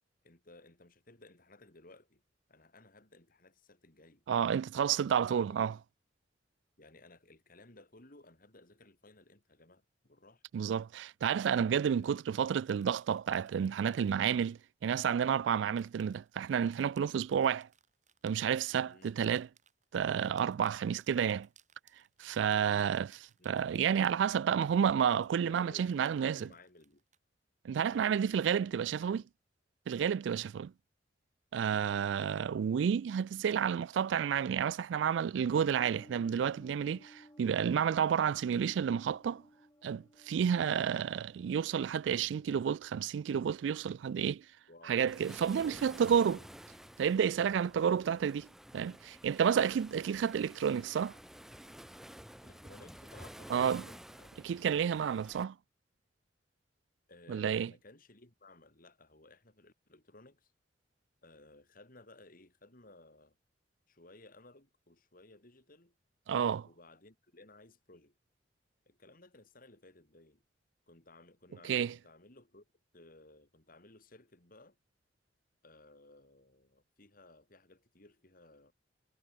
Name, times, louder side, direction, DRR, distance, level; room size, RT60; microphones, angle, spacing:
voice 1, 0.2-2.2 2.5-4.2 5.2-5.8 6.8-10.4 11.9-12.1 18.9-19.2 23.4-23.7 25.3-27.0 27.7-29.3 32.1-32.6 44.7-45.0 45.6-46.3 47.8-48.0 52.4-54.3 57.1-60.5 61.2-63.4 63.9-65.9 66.6-68.1 68.9-70.4 70.9-72.7 72.9-74.8 75.6-78.7, left 2 dB, 50° left, 3.8 m, -58 dB
voice 2, 4.3-5.7 10.5-17.7 18.2-19.5 19.9-21.5 22.2-23.2 23.4-26.5 27.6-29.2 29.9-30.7 31.5-39.4 39.8-44.4 44.9-46.4 47.0-48.4 48.7-51.1 53.5-53.8 54.4-55.5 57.3-57.7 66.3-66.7 71.6-71.9, right 8 dB, 85° right, 0.3 m, -30 dB
sound 1, 11.7-14.7 15.7-24.7 25.2-27.2, right 9 dB, 45° right, 5.2 m, -67 dB
sound 2, 35.4-44.5, equal, 20° left, 5.8 m, -60 dB
Waves surf, 45.1-55.4, equal, ahead, 1.2 m, -52 dB
head